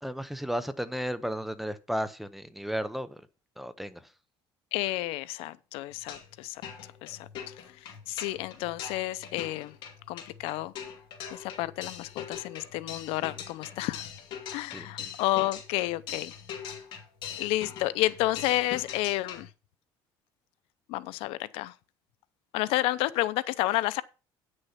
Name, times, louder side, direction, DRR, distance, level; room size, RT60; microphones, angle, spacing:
voice 1, 0.0-3.2 3.6-4.0 14.7-14.9, equal, ahead, 0.7 m, -33 dB
voice 2, 4.7-6.6 7.0-9.8 10.1-10.7 11.3-14.1 14.5-16.3 17.4-19.5 20.9-21.7 22.5-24.0, left 17 dB, 80° left, 0.6 m, -31 dB
sound 1, 5.9-6.4 6.6-19.5, left 8 dB, 55° left, 2.6 m, -42 dB
9.3 x 6.5 x 5.8 m
cardioid pair, 165°, 10 cm